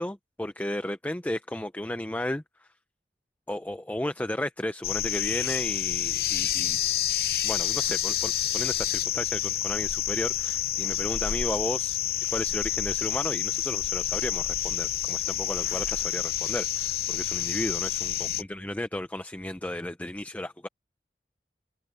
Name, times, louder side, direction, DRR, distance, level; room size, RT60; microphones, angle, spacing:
voice 1, 0.0-2.7 3.5-6.8 7.4-12.0 12.3-20.7, left 1 dB, 10° left, 0.5 m, -34 dB
sound 1, 4.8-18.4, left 12 dB, 55° left, 0.6 m, -28 dB
open air
head